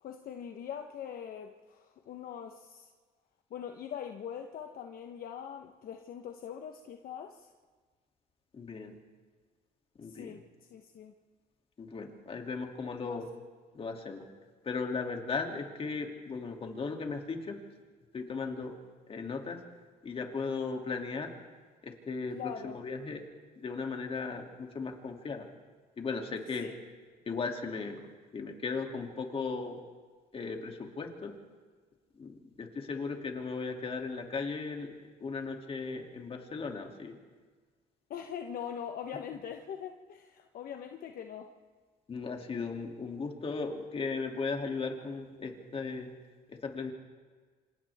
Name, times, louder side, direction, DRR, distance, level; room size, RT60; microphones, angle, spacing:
voice 1, 0.0-2.9 3.5-7.5 10.1-10.4 10.7-11.1 13.0-13.2 22.3-22.8 26.5-26.8 38.1-41.5, left 8 dB, 60° left, 4 dB, 1.1 m, -42 dB
voice 2, 8.5-9.0 10.0-10.4 11.8-13.3 13.7-14.3 14.6-17.6 18.1-18.7 19.1-19.6 20.0-21.3 21.8-23.2 23.6-25.4 26.0-26.7 27.3-28.0 28.3-29.8 30.3-31.3 32.2-34.9 35.2-37.1 42.1-46.1 46.5-46.9, left 4 dB, 35° left, 2 dB, 2.8 m, -37 dB
27.0 x 26.5 x 3.6 m, 1.5 s
cardioid pair, 110°, 17 cm